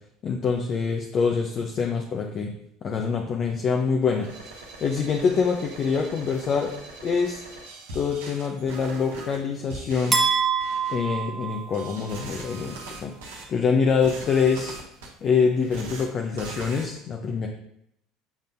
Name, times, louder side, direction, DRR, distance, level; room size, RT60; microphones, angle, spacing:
voice 1, 0.2-2.5 2.8-4.3 4.8-6.7 7.0-7.4 7.9-10.2 10.9-14.8 15.2-17.5, left 5 dB, 45° left, 2 dB, 0.6 m, -25 dB
sound 1, 4.1-9.4 9.7-10.2 10.6-11.0 11.7-13.4 13.9-15.1 15.6-16.0 16.4-16.8, right 3 dB, 80° right, 1.1 m, -41 dB
sound 2, 10.1-12.2, right 6 dB, 25° right, 1.1 m, -26 dB
7.2 x 5.2 x 2.6 m, 0.73 s
hypercardioid pair, 70°, 0 cm